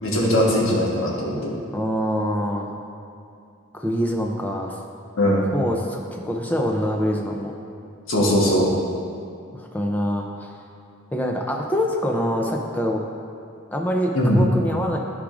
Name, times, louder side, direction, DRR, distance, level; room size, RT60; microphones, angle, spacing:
voice 1, 0.0-1.5 5.2-5.5 8.1-8.7 14.1-14.4, equal, 80° left, -3 dB, 1.3 m, -20 dB
voice 2, 1.7-2.8 3.7-4.8 5.5-7.5 9.5-10.5 11.1-13.0 13.7-15.0, equal, 10° left, 0 dB, 0.5 m, -25 dB
11.5 x 4.9 x 2.5 m, 2.5 s
head